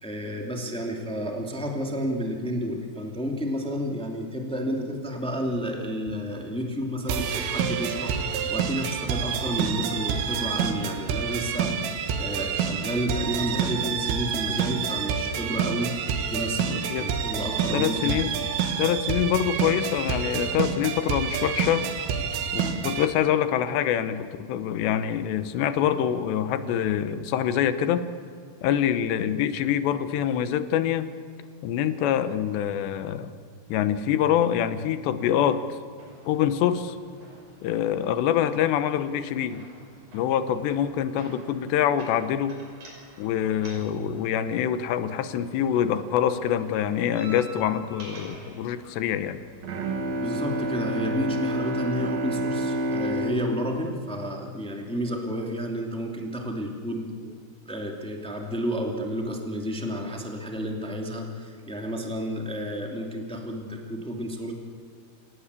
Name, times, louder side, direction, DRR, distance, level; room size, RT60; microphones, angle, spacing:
voice 1, 0.0-16.0 16.3-18.1 22.5-22.8 50.2-57.1 57.6-64.5, equal, 5° left, 1 dB, 0.6 m, -31 dB
sound 1, 7.1-23.1, right 7 dB, 85° right, 4.3 m, -28 dB
voice 2, 16.7-17.1 17.7-18.3 18.8-21.8 22.5-28.0 28.6-31.1 31.6-33.3 33.7-35.8 36.3-37.0 37.6-39.7 40.1-42.5 43.2-49.4, left 10 dB, 75° left, 11 dB, 2.9 m, -25 dB
sound 2, 36.0-51.0, right 1 dB, 40° right, 6.7 m, -49 dB
Bowed string instrument, 49.6-55.3, right 1 dB, 65° right, 1.7 m, -29 dB
28.5 x 18.0 x 8.4 m, 2.2 s
omnidirectional pair, 5.7 m